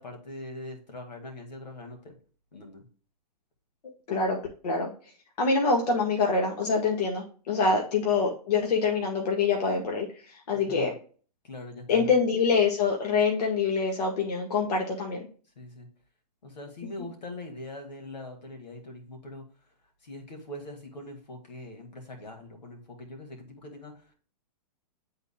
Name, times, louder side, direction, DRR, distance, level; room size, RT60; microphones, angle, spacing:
voice 1, 0.0-2.2 2.5-2.8 10.7-10.9 11.4-12.1 15.6-15.9 16.4-19.5 20.0-24.1, left 1 dB, 90° left, 4 dB, 2.3 m, -42 dB
voice 2, 5.4-10.9 11.9-15.2, left 4 dB, 65° left, 1 dB, 1.7 m, -25 dB
10.5 x 4.0 x 2.3 m, 0.40 s
hypercardioid pair, 130°, 21 cm